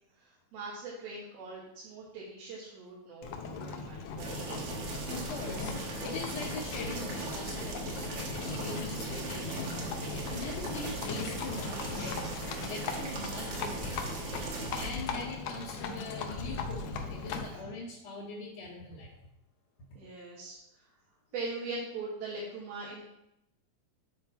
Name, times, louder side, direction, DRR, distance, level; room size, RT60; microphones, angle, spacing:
voice 1, 0.2-4.8 5.3-5.4 5.7-6.0 8.7-8.8 11.7-12.1 15.8-15.9 17.5-17.7 20.0-20.9 21.3-23.0, right 3 dB, 80° right, -5 dB, 3.4 m, -42 dB
Livestock farm animals working animals, 3.2-17.6, left 4 dB, 85° left, 1.5 m, -38 dB
sound 1, 4.2-14.9, right 3 dB, 55° right, 2.1 m, -39 dB
voice 2, 5.1-12.2 12.7-14.2 14.7-19.1, left 2 dB, 60° left, -6 dB, 2.0 m, -42 dB
9.3 x 5.5 x 4.2 m, 0.84 s
omnidirectional pair, 4.2 m